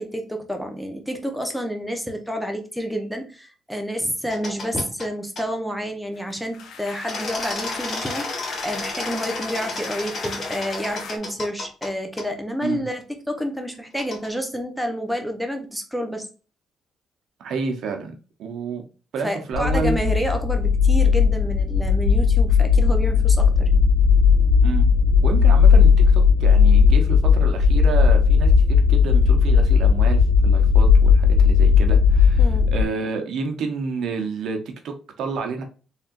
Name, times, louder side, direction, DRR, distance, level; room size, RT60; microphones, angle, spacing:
voice 1, 0.0-16.3 19.2-23.8 32.4-32.7, equal, ahead, 4 dB, 0.9 m, -29 dB
sound 1, 4.3-5.1 5.4-5.5 7.1-11.9 12.2-12.3 14.0-14.3, left 2 dB, 40° left, 2.1 m, -32 dB
sound 2, 6.1-11.2, left 5 dB, 75° left, 0.8 m, -37 dB
voice 2, 17.4-18.1 18.4-18.8 19.1-20.0 24.6-24.9 25.2-35.6, right 5 dB, 75° right, 5 dB, 0.8 m, -29 dB
sound 3, 19.5-32.8, left 6 dB, 50° right, 2.0 m, -16 dB
4.2 x 3.5 x 2.5 m, 0.35 s
cardioid pair, 90°, 0 cm